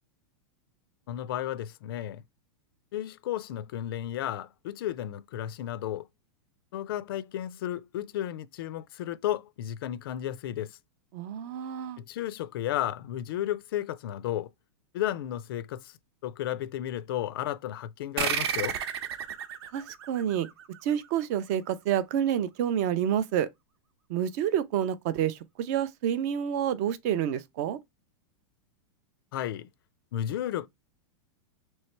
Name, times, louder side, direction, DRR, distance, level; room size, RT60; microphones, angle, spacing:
voice 1, 1.1-2.2 2.9-6.1 6.7-10.8 12.0-14.5 14.9-15.9 16.2-18.8 29.3-29.7 30.1-30.7, left 12 dB, 55° left, 0.4 m, -33 dB
voice 2, 11.1-12.0 19.7-20.5 20.8-23.5 24.1-27.8, right 10 dB, 35° right, 0.4 m, -28 dB
sound 1, 18.2-21.2, right 8 dB, 65° right, 0.8 m, -32 dB
3.2 x 3.1 x 4.2 m
supercardioid pair, 165°, 15 cm